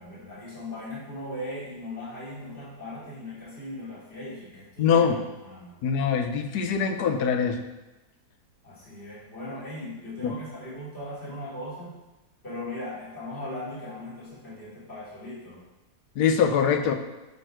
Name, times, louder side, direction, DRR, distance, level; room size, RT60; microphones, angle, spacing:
voice 1, 0.0-5.1 5.4-5.8 8.6-12.0 12.4-15.6, left 1 dB, 40° left, -9 dB, 3.2 m, -38 dB
voice 2, 4.8-5.2 5.8-7.6 10.2-10.4 16.2-16.9, left 6 dB, 75° left, 6 dB, 1.3 m, -23 dB
11.0 x 4.2 x 4.5 m, 1.1 s
omnidirectional pair, 1.7 m